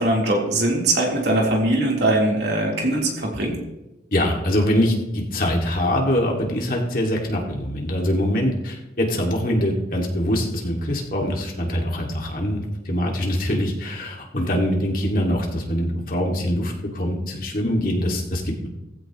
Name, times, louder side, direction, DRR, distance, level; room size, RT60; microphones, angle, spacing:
voice 1, 0.0-3.5, right 1 dB, 65° right, -2 dB, 3.7 m, -21 dB
voice 2, 4.1-18.7, equal, 50° left, 0 dB, 2.3 m, -23 dB
17.5 x 15.0 x 3.1 m, 0.97 s
head